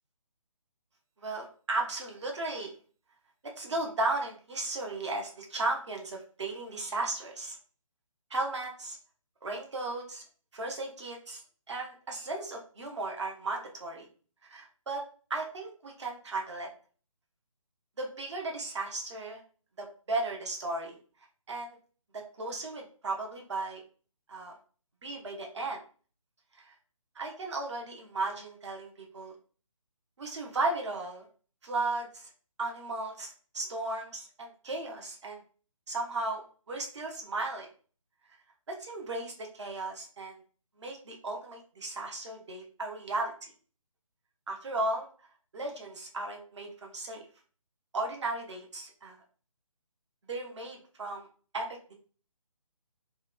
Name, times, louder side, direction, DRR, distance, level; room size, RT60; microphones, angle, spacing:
voice 1, 1.2-2.7 3.6-7.6 8.3-9.0 9.4-10.2 10.5-11.4 11.7-14.1 14.5-15.0 15.3-16.7 18.0-19.4 19.8-21.0 21.5-21.8 22.1-23.8 24.3-24.5 25.0-25.8 26.5-26.7 27.2-29.3 30.2-31.2 31.6-32.3 32.6-35.4 35.9-36.4 36.7-37.7 38.7-40.4 40.8-43.5 44.5-45.1 45.5-47.2 47.9-49.1 50.3-51.3 51.5-51.9, right 2 dB, 55° right, 1 dB, 0.7 m, -35 dB
2.9 x 2.1 x 2.3 m, 0.40 s
figure-of-eight pair, 145°, 18 cm